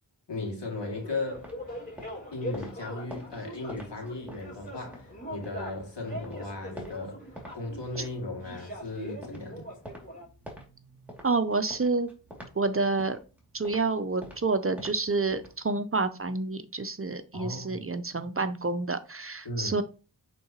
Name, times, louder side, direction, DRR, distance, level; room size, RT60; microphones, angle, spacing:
voice 1, 0.3-1.5 2.3-7.3 7.5-9.7 17.3-17.9 19.4-19.8, left 2 dB, 80° left, 2.4 m, -36 dB
sound 1, 0.8-10.2, equal, 20° left, 3.7 m, -42 dB
sound 2, 1.3-5.7 6.1-7.6 7.9-15.6, equal, 5° right, 2.4 m, -48 dB
voice 2, 11.2-12.1 12.6-13.2 13.5-19.8, right 3 dB, 30° right, 0.6 m, -28 dB
8.4 x 3.8 x 2.9 m
wide cardioid pair, 60°, 42 cm